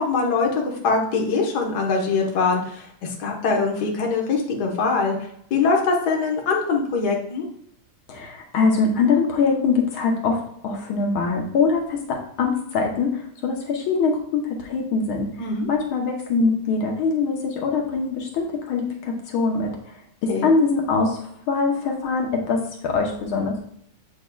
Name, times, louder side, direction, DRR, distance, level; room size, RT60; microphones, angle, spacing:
voice 1, 0.0-7.5 15.4-15.7 20.3-20.5, left 4 dB, 55° left, 1 dB, 1.6 m, -23 dB
voice 2, 8.1-15.3 15.7-19.7 20.2-23.6, left 4 dB, 80° left, 1 dB, 1.8 m, -23 dB
8.1 x 5.3 x 2.3 m, 0.70 s
omnidirectional pair, 2.3 m